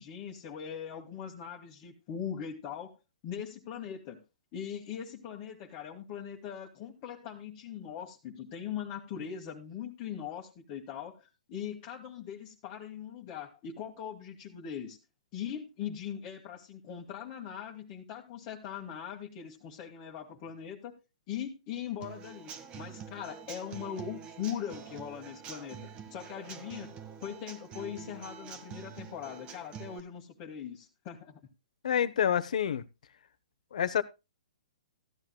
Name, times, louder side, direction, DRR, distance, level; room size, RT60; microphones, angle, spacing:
voice 1, 0.0-3.0 3.2-4.2 4.5-15.0 15.3-21.0 21.3-26.9 27.2-31.4, left 8 dB, 35° left, 1.8 m, -40 dB
Human voice / Acoustic guitar / Drum, 22.0-30.0, right 7 dB, 25° right, 1.5 m, -46 dB
voice 2, 31.8-32.8 33.7-34.0, left 9 dB, 70° left, 1.1 m, -27 dB
15.5 x 11.0 x 2.3 m
hypercardioid pair, 140°, 4 cm